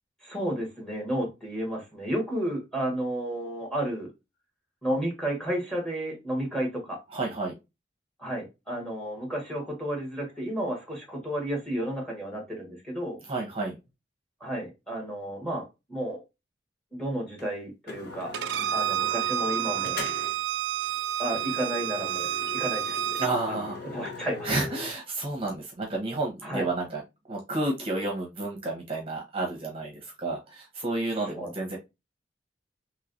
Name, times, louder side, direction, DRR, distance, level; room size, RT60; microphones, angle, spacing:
voice 1, 0.2-4.1 4.8-7.0 8.2-13.2 14.4-15.6 15.9-16.2 16.9-18.3 18.7-20.0 21.2-23.2 23.5-23.6 23.9-24.5 26.4-26.6 31.3-31.5, right 1 dB, 5° left, 1.3 m, -32 dB
voice 2, 7.1-7.5 13.3-13.7 23.2-23.8 24.4-27.0 27.3-31.8, right 2 dB, 35° right, 0.7 m, -31 dB
sound 1, 17.4-17.5 17.9-20.5 20.8-21.0 21.3-24.9, left 4 dB, 65° left, 0.9 m, -40 dB
Bowed string instrument, 18.3-23.3, right 11 dB, 75° right, 0.3 m, -29 dB
3.1 x 3.0 x 2.5 m
head